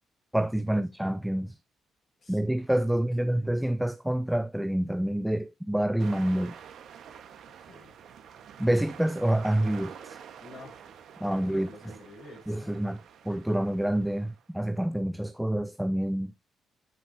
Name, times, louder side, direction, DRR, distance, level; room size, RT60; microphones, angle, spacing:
voice 1, 0.3-1.6 2.3-6.6 8.6-10.2 11.2-11.7 12.5-13.0 13.2-16.4, right 1 dB, 5° right, 0.6 m, -27 dB
voice 2, 2.9-3.5 7.6-7.9 10.4-10.8 11.2-12.8, left 2 dB, 45° left, 6.1 m, -50 dB
sound 1, 6.0-14.4, right 8 dB, 70° right, 1.7 m, -48 dB
12.5 x 5.7 x 3.0 m
cardioid pair, 90°, 0 cm